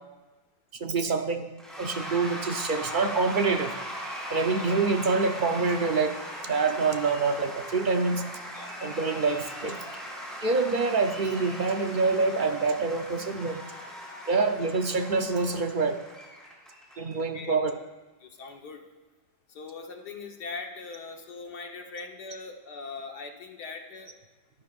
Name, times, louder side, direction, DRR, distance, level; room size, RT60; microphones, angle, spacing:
voice 1, 0.8-1.5 1.8-3.7 4.3-6.2 6.4-8.3 8.8-9.8 10.4-13.6 14.3-16.0 17.0-17.7, right 4 dB, 50° right, 6 dB, 0.6 m, -26 dB
Cheering / Applause / Crowd, 1.6-17.2, equal, ahead, 5.1 m, -39 dB
voice 2, 18.2-18.8 19.5-24.1, left 4 dB, 65° left, 3 dB, 1.8 m, -41 dB
25.0 x 13.5 x 2.5 m, 1.2 s
omnidirectional pair, 1.9 m